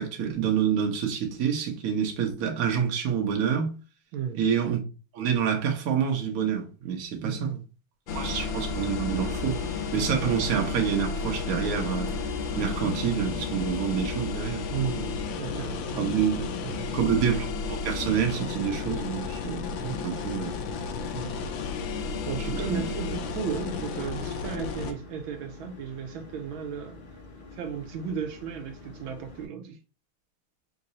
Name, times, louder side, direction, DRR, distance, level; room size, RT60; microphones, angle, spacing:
voice 1, 0.0-3.7 4.3-4.8 5.1-7.5 8.1-12.1 12.6-14.6 16.0-16.5 16.9-19.7 20.0-20.5 22.7-22.8, right 7 dB, 55° right, 1.1 m, -27 dB
voice 2, 4.1-4.5 7.2-7.6 14.7-17.0 19.8-20.2 21.1-21.4 21.9-27.0 27.5-29.8, right 7 dB, 75° right, 1.4 m, -35 dB
sound 1, 8.1-24.9, left 5 dB, 75° left, 1.3 m, -32 dB
sound 2, 17.5-29.5, left 3 dB, 40° left, 0.7 m, -48 dB
3.9 x 2.6 x 4.1 m
omnidirectional pair, 2.3 m